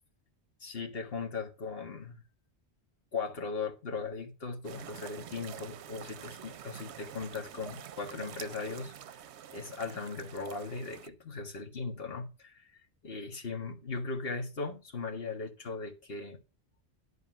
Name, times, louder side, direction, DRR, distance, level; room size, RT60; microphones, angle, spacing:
voice 1, 0.6-2.2 3.1-8.9 9.5-12.8 13.0-16.4, left 4 dB, 60° left, 1.8 m, -38 dB
sound 1, 4.6-11.1, right 9 dB, 80° right, 1.0 m, -47 dB
11.5 x 3.8 x 7.4 m
omnidirectional pair, 1.1 m